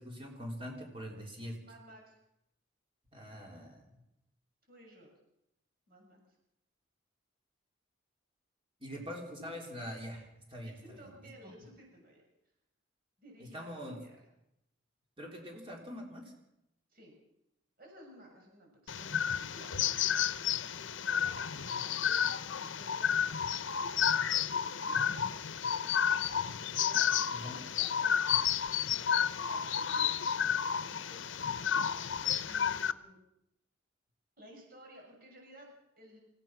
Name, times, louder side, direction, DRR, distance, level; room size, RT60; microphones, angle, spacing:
voice 1, 0.0-1.6 3.1-3.9 8.8-11.1 11.4-11.5 13.5-14.0 15.2-16.3 27.3-27.6, equal, 25° right, -1 dB, 3.8 m, -43 dB
voice 2, 1.6-2.2 4.7-5.1 5.9-6.2 10.6-12.2 13.2-14.2 16.9-17.1 17.8-19.8 20.6-26.4 26.7-32.1 32.4-33.2 34.4-36.2, equal, 45° right, 0 dB, 6.8 m, -56 dB
sound 1, 18.9-32.9, left 8 dB, 70° left, 0.8 m, -31 dB
28.0 x 16.0 x 6.1 m, 0.85 s
head